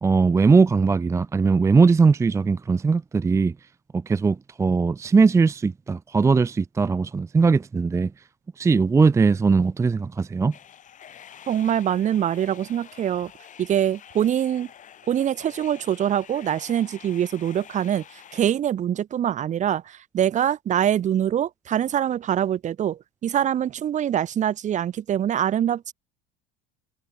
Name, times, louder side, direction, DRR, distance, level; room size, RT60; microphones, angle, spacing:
voice 1, 0.0-3.5 3.9-8.1 8.6-10.5, right 4 dB, 15° right, 0.5 m, -20 dB
sound 1, 10.5-18.4, left 9 dB, 40° left, 3.7 m, -47 dB
voice 2, 11.5-13.3 13.6-14.7 15.1-25.9, right 10 dB, 35° right, 1.1 m, -24 dB
supercardioid pair, 115°, 20 cm